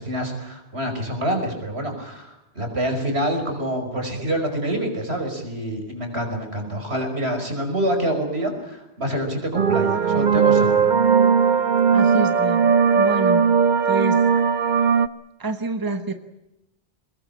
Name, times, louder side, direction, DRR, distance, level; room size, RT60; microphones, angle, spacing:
voice 1, 0.0-10.9, right 1 dB, 75° right, 4 dB, 5.7 m, -26 dB
sound 1, 9.5-15.1, right 6 dB, 45° right, 1.1 m, -18 dB
voice 2, 11.9-13.4 13.8-14.2 15.4-16.1, right 3 dB, 20° right, 9 dB, 1.3 m, -27 dB
23.5 x 20.5 x 8.8 m, 0.89 s
omnidirectional pair, 1.1 m